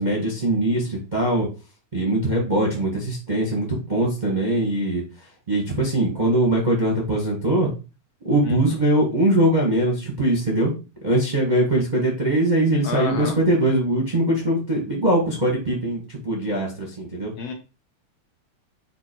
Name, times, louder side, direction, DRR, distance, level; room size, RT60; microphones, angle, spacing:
voice 1, 0.0-1.5 1.9-5.0 5.5-7.7 8.2-10.7 11.0-17.3, right 1 dB, 35° right, -2 dB, 0.7 m, -21 dB
voice 2, 12.8-13.4 17.4-17.5, left 5 dB, 60° left, 2 dB, 2.2 m, -29 dB
7.7 x 3.0 x 4.5 m, 0.31 s
omnidirectional pair, 3.5 m